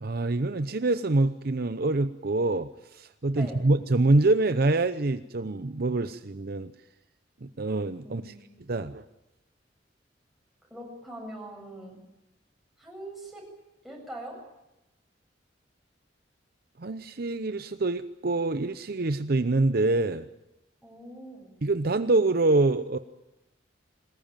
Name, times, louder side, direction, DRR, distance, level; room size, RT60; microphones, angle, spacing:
voice 1, 0.0-6.7 7.4-8.3 8.7-9.0 16.8-20.3 21.6-23.0, right 2 dB, 55° right, 10 dB, 0.8 m, -25 dB
voice 2, 8.0-8.4 10.7-12.0 12.8-13.4 13.8-14.4 20.8-21.6, right 1 dB, ahead, -1 dB, 7.8 m, -42 dB
22.5 x 19.5 x 9.0 m, 0.93 s
head